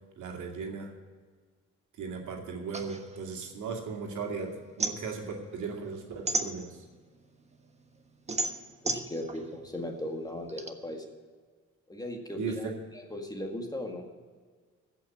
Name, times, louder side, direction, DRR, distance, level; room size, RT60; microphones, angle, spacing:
voice 1, 0.2-0.9 1.9-6.9 12.3-12.8, right 5 dB, 75° right, 1 dB, 2.5 m, -37 dB
sound 1, 2.7-4.2 4.5-7.1 7.5-10.7, right 2 dB, 20° right, 1.3 m, -34 dB
voice 2, 8.8-11.0 11.9-12.7 13.1-14.0, left 1 dB, 15° left, 2 dB, 2.0 m, -37 dB
15.5 x 6.1 x 8.4 m, 1.5 s
cardioid pair, 90°, 30 cm